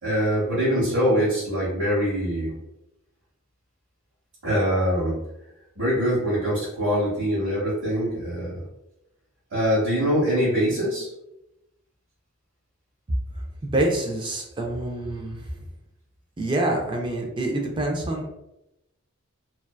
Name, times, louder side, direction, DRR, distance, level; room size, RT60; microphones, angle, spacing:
voice 1, 0.0-2.6 4.4-5.2 5.8-8.6 9.5-11.1, equal, 70° right, -9 dB, 1.0 m, -23 dB
voice 2, 13.6-15.5 16.4-18.3, right 1 dB, 20° right, 1 dB, 0.3 m, -26 dB
2.6 x 2.2 x 2.2 m, 0.88 s
head